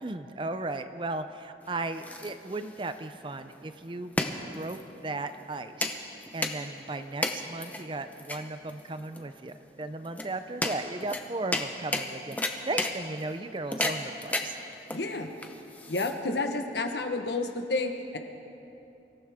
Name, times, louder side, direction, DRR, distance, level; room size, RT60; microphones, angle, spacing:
voice 1, 0.0-4.2 4.5-6.0 6.3-14.6, right 2 dB, 25° right, 10 dB, 0.5 m, -36 dB
sound 1, 1.6-16.5, left 2 dB, 10° left, 0.7 m, -34 dB
voice 2, 14.9-15.3 15.9-18.2, left 2 dB, 70° left, 5 dB, 1.2 m, -30 dB
24.5 x 15.0 x 3.6 m, 2.8 s
head